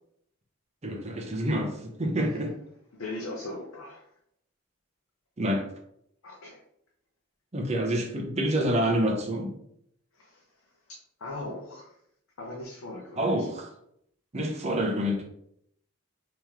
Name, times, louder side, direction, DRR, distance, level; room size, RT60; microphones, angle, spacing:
voice 1, 0.8-2.5 5.4-5.6 7.5-9.5 13.2-13.7 14.3-15.2, equal, 30° right, 2 dB, 0.6 m, -27 dB
voice 2, 2.9-4.1 6.2-6.6 10.1-10.4 10.9-11.9 12.4-13.5, left 2 dB, 70° left, -2 dB, 0.7 m, -39 dB
3.0 x 3.0 x 3.6 m, 0.72 s
head